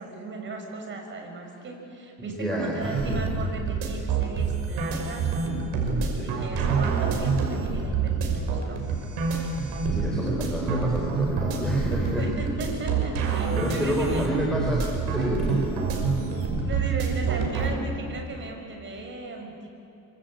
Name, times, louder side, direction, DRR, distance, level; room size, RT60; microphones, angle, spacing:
voice 1, 0.0-5.3 6.1-8.8 12.2-14.3 15.2-15.4 16.6-19.7, right 3 dB, 30° right, 2 dB, 5.8 m, -37 dB
voice 2, 2.2-3.2 6.0-6.4 9.9-12.3 13.2-14.8 15.1-15.6, right 1 dB, ahead, -3 dB, 4.4 m, -29 dB
sound 1, 2.8-17.7, right 5 dB, 70° right, 5.8 m, -27 dB
sound 2, 10.3-18.2, left 1 dB, 60° left, 4.6 m, -39 dB
26.0 x 25.0 x 8.8 m, 2.9 s
cardioid pair, 145°, 37 cm